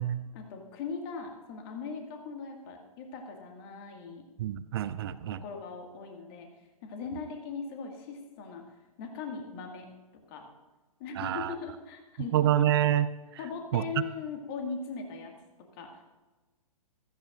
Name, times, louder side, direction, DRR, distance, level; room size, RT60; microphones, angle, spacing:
voice 1, 0.3-4.2 5.4-6.5 6.8-8.7 9.0-9.9 10.3-10.5 11.0-12.4 13.4-16.0, left 5 dB, 40° left, 2 dB, 2.1 m, -39 dB
voice 2, 4.4-5.4 11.2-11.5 12.3-13.1 13.7-13.8, right 11 dB, 40° right, 15 dB, 0.5 m, -27 dB
15.5 x 14.5 x 2.6 m, 1.2 s
figure-of-eight pair, 120°, 19 cm